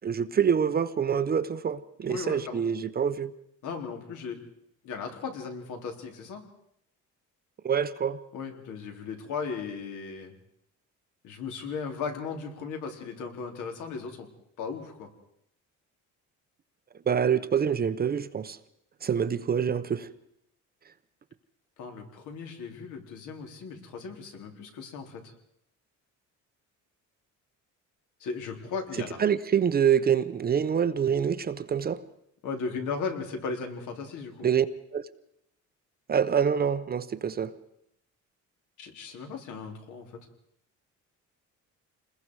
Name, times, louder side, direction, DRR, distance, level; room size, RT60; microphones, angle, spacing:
voice 1, 0.0-3.3 7.6-8.2 17.1-18.6 19.0-20.1 29.2-32.0 34.4-34.7 34.9-35.0 36.1-37.5, right 7 dB, 30° right, 12 dB, 0.8 m, -26 dB
voice 2, 2.1-2.6 3.6-4.4 4.8-6.4 8.3-10.3 11.2-14.3 14.6-15.1 21.8-25.3 28.2-29.2 32.4-34.5 38.8-40.2, left 5 dB, 70° left, 3 dB, 3.9 m, -36 dB
28.0 x 21.0 x 4.8 m, 0.75 s
cardioid pair, 150°, 31 cm